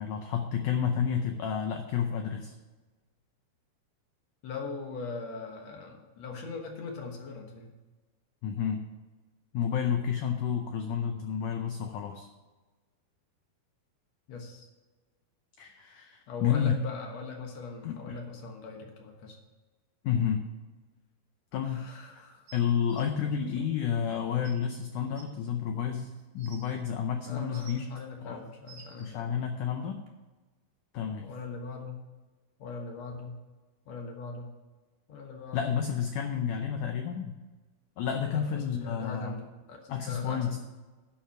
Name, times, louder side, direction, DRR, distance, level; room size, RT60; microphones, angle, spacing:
voice 1, 0.0-2.5 8.4-8.8 9.5-12.3 15.6-16.8 17.8-18.2 20.0-20.4 21.5-21.9 22.5-27.9 28.2-28.4 29.0-30.0 30.9-31.3 35.5-37.4 38.0-39.4 39.9-40.6, left 8 dB, 85° left, 5 dB, 1.7 m, -30 dB
voice 2, 4.4-7.7 14.3-14.7 16.3-19.4 21.6-22.5 23.2-23.6 27.2-29.5 31.2-32.0 32.6-33.4 33.9-34.5 35.1-35.7 38.3-40.6, left 4 dB, 60° left, 2 dB, 1.9 m, -41 dB
sound 1, 22.5-23.0 24.1-24.2 24.4-24.5 25.1-25.2 26.0-26.6 27.3-27.9 28.4-29.1 30.1-30.2, right 6 dB, 70° right, 3.0 m, -52 dB
11.5 x 5.7 x 5.8 m, 1.2 s
omnidirectional pair, 4.5 m